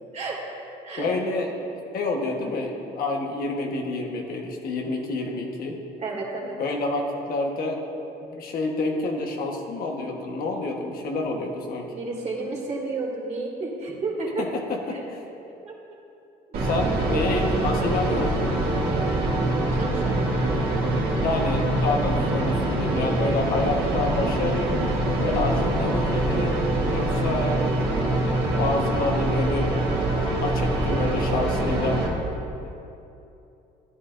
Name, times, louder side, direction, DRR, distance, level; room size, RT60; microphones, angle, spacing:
voice 1, 1.0-5.8 6.6-7.8 8.2-11.9 14.4-15.2 16.6-18.5 21.2-24.7 25.2-26.6 26.9-28.3 28.6-29.7 30.4-32.0 32.6-32.7, left 2 dB, 60° left, 1 dB, 1.3 m, -28 dB
voice 2, 6.0-6.6 11.9-14.5 14.9-15.0 15.6-15.8 19.7-20.2, right 3 dB, 40° right, -3 dB, 2.5 m, -31 dB
sound 1, 16.5-32.1, right 1 dB, 70° right, 2.1 m, -24 dB
14.0 x 10.5 x 2.6 m, 2.8 s
cardioid pair, 110°, 17 cm